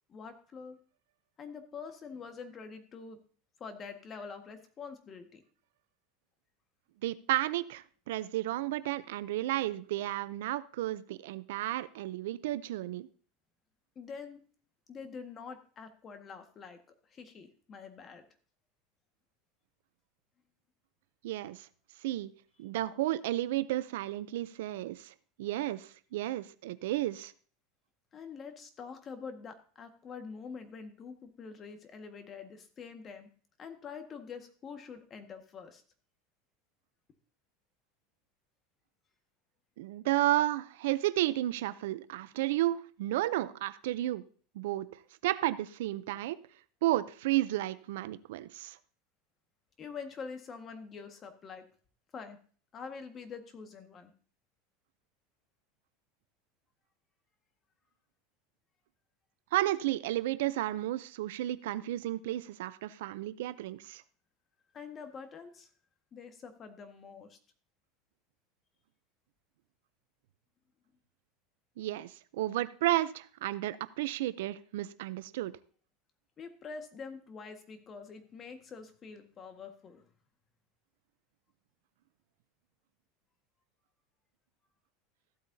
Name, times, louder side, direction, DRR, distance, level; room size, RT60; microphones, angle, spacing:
voice 1, 0.1-0.8 1.4-3.2 3.6-5.4 14.0-14.4 14.9-16.8 17.1-18.3 28.1-33.3 33.6-35.8 49.8-51.6 52.1-52.4 52.7-54.1 64.7-65.7 66.1-67.4 76.4-80.0, left 5 dB, 30° left, 1.6 m, -45 dB
voice 2, 7.0-13.1 21.2-21.7 22.0-22.3 22.6-27.3 39.8-44.2 44.5-44.9 45.2-46.4 46.8-48.8 59.5-64.0 71.8-75.5, right 15 dB, 80° right, 0.6 m, -32 dB
14.5 x 8.5 x 2.8 m
supercardioid pair, 120°, 0 cm